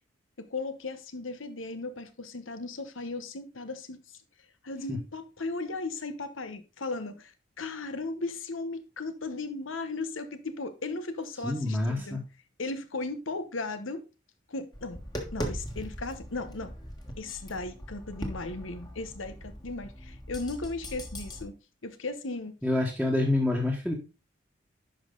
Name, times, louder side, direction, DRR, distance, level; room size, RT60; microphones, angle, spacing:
voice 1, 0.4-4.0 4.6-12.2 12.6-14.0 14.5-15.0 15.3-16.7 17.2-21.5 21.8-22.5, left 3 dB, 90° left, 1.1 m, -36 dB
voice 2, 11.4-12.2 22.6-23.9, left 2 dB, ahead, 1.4 m, -27 dB
Tap, 14.7-21.4, equal, 20° left, 1.5 m, -40 dB
11.0 x 5.3 x 3.8 m
head